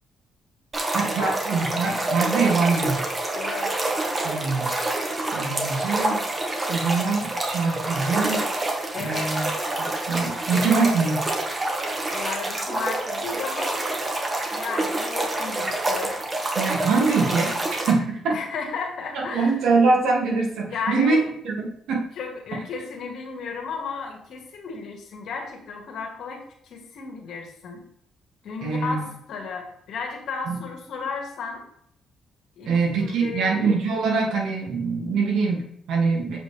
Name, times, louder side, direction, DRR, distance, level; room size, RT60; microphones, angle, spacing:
sound 1, 0.7-17.9, right 2 dB, 30° right, 1.5 m, -27 dB
voice 1, 0.9-3.0 4.2-4.7 5.3-8.4 9.0-9.5 9.8-11.2 16.6-18.3 19.1-21.2 21.4-22.0 22.5-22.6 28.6-29.0 30.5-30.6 32.7-36.4, right 4 dB, 80° right, -1 dB, 2.3 m, -24 dB
voice 2, 3.3-3.7 8.9-9.3 12.1-13.8 14.5-16.2 18.3-19.6 20.7-21.3 22.2-27.8 28.4-31.6 32.6-32.7 32.9-33.5, left 5 dB, 70° left, 2 dB, 1.8 m, -34 dB
7.5 x 5.3 x 3.4 m, 0.69 s
cardioid pair, 90°, 0 cm